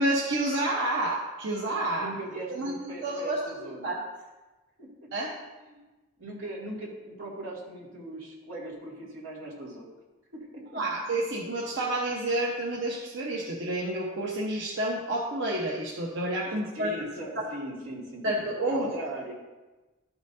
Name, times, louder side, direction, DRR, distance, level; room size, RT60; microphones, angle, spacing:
voice 1, 0.0-2.1 2.5-4.0 5.1-5.3 10.7-16.9 18.2-18.9, right 1 dB, 65° right, -4 dB, 1.1 m, -29 dB
voice 2, 1.9-3.9 4.8-4.9 5.6-5.8 6.2-9.9 10.3-10.8 16.4-19.3, right 1 dB, 90° right, -5 dB, 2.5 m, -39 dB
13.0 x 6.1 x 2.7 m, 1.2 s
head